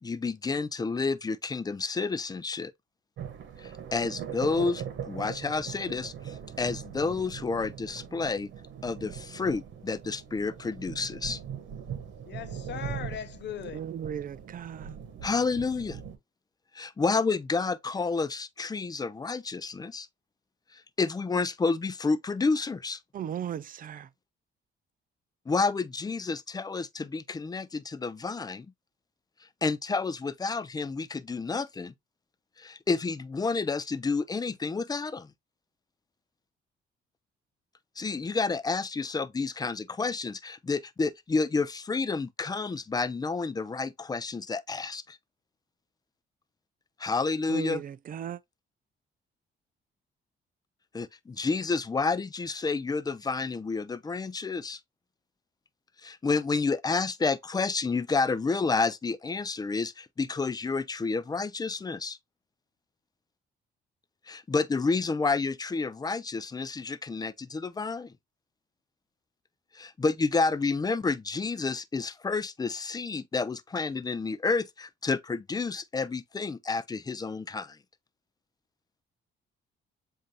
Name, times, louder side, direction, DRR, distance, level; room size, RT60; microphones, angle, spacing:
voice 1, 0.0-2.7 3.6-8.5 8.8-11.4 15.2-16.0 16.7-20.1 20.7-23.0 25.5-28.7 29.6-31.9 32.6-35.3 38.0-45.2 47.0-47.8 50.9-54.8 56.0-62.2 64.3-68.1 69.7-77.8, left 4 dB, 20° left, 0.4 m, -30 dB
sound 1, 3.2-16.2, right 8 dB, 70° right, 1.1 m, -40 dB
voice 2, 12.2-13.8, left 10 dB, 60° left, 0.7 m, -39 dB
voice 3, 13.7-15.0 23.1-24.1 47.5-48.4, right 9 dB, 45° right, 0.4 m, -36 dB
7.5 x 2.6 x 2.7 m
cardioid pair, 90°, 20 cm